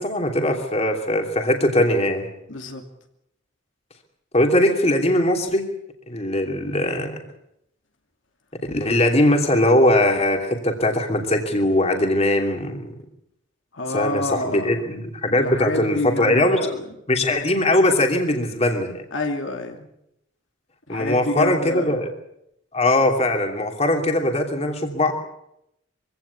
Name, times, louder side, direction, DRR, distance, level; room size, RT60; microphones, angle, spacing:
voice 1, 0.0-2.3 4.3-5.6 6.1-7.2 8.7-12.9 13.9-16.6 17.1-19.0 20.9-22.1 22.7-25.1, left 1 dB, 35° left, 3 dB, 2.9 m, -20 dB
voice 2, 2.5-2.8 13.7-14.8 15.3-16.8 19.1-19.9 20.9-22.0, left 2 dB, 75° left, 4 dB, 2.6 m, -28 dB
24.0 x 17.0 x 8.4 m, 0.80 s
head